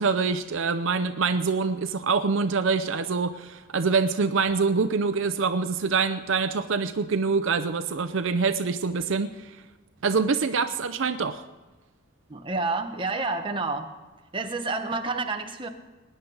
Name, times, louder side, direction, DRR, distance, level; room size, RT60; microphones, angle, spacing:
voice 1, 0.0-9.6 10.0-11.4, right 4 dB, 65° right, 10 dB, 0.6 m, -25 dB
voice 2, 12.3-13.9 14.3-15.7, right 3 dB, 25° right, 4 dB, 1.0 m, -29 dB
20.0 x 10.0 x 3.9 m, 1.2 s
head